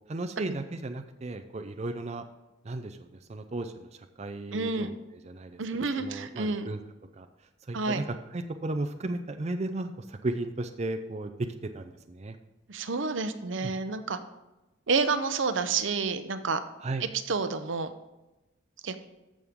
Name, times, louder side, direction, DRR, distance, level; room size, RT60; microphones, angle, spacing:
voice 1, 0.0-2.2 2.6-4.9 5.2-5.6 6.0-6.8 7.2-7.3 7.7-11.5 11.7-12.4 13.6-13.7 16.8-17.1, right 2 dB, 35° right, 7 dB, 0.5 m, -35 dB
voice 2, 4.5-4.9 5.6-6.7 7.7-8.0 12.7-14.2 14.9-16.6 17.3-17.9 18.8-19.0, right 4 dB, 75° right, 10 dB, 0.7 m, -29 dB
14.0 x 6.3 x 3.7 m, 1.0 s
head